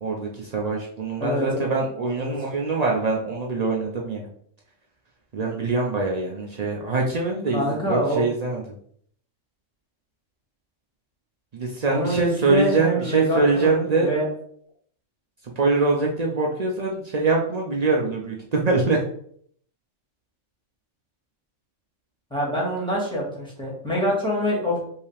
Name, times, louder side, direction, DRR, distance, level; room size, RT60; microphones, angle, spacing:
voice 1, 0.0-4.3 5.3-8.6 11.5-14.1 15.4-19.0, right 3 dB, 70° right, -1 dB, 0.3 m, -23 dB
voice 2, 1.2-1.6 2.2-2.4 7.5-8.3 11.9-14.3 22.3-24.8, equal, 5° left, -4 dB, 1.6 m, -25 dB
5.5 x 2.8 x 3.3 m, 0.63 s
omnidirectional pair, 1.5 m